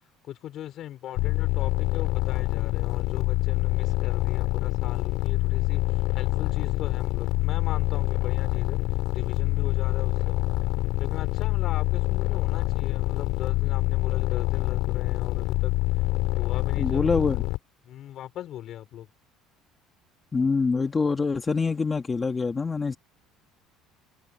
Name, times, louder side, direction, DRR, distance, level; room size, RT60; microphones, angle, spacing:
voice 1, 0.2-8.8 9.1-10.4 11.0-15.7 16.0-16.1 16.3-17.5 17.8-19.1, left 12 dB, 50° left, 4.5 m, -39 dB
sound 1, 1.2-17.6, left 20 dB, 75° left, 3.2 m, -26 dB
voice 2, 16.8-17.4 20.3-23.0, left 4 dB, 20° left, 1.5 m, -25 dB
cardioid pair, 130°, 0 cm